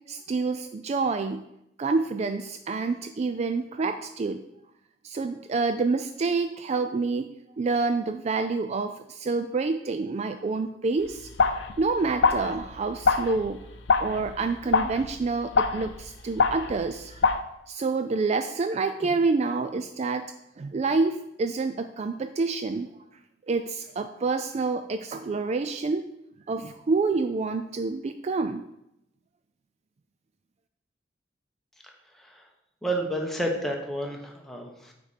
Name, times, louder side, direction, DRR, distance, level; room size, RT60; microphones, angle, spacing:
voice 1, 0.1-1.4 1.8-4.4 5.0-11.3 11.8-13.6 14.0-17.2 17.7-20.3 20.6-22.9 23.5-26.0 26.5-28.6, right 4 dB, 35° right, 9 dB, 0.3 m, -28 dB
sound 1, 11.1-17.4, left 4 dB, 80° left, 0.6 m, -26 dB
voice 2, 32.8-34.9, right 1 dB, ahead, 0 dB, 1.2 m, -30 dB
9.1 x 4.3 x 5.0 m, 0.82 s
head